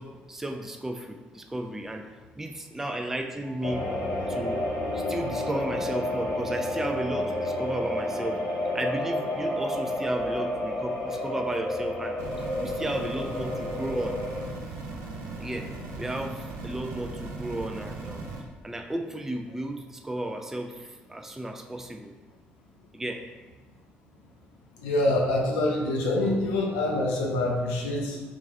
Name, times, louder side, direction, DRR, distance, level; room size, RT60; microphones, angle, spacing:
voice 1, 0.0-2.1 2.4-3.9 4.3-4.6 4.9-8.4 8.7-12.2 12.6-14.2 15.4-15.7 16.0-18.2 18.6-22.1 22.9-23.3, right 1 dB, 5° right, 4 dB, 0.3 m, -33 dB
sound 1, 3.4-11.0, right 4 dB, 40° right, 0.9 m, -46 dB
sound 2, 3.6-14.4, left 1 dB, 50° left, 1.0 m, -31 dB
sound 3, 12.2-18.4, right 3 dB, 70° right, 0.5 m, -38 dB
voice 2, 15.1-15.5 24.8-28.2, left 1 dB, 75° left, -1 dB, 0.6 m, -26 dB
3.0 x 2.3 x 3.8 m, 1.2 s
figure-of-eight pair, 45°, 6 cm